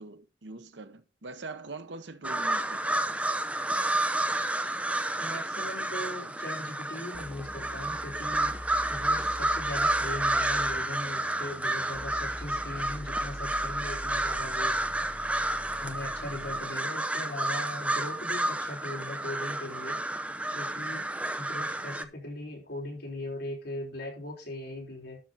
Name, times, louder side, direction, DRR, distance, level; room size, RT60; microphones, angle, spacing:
voice 1, 0.0-3.1, right 3 dB, 80° right, 1.0 m, -43 dB
sound 1, 2.2-22.1, right 1 dB, 5° right, 0.6 m, -30 dB
voice 2, 5.2-8.5 8.9-15.2 15.8-20.0 20.5-21.1 21.4-25.2, left 1 dB, 65° left, 5.1 m, -39 dB
sound 2, 7.1-16.7, equal, 10° left, 2.2 m, -44 dB
12.0 x 6.0 x 4.1 m
head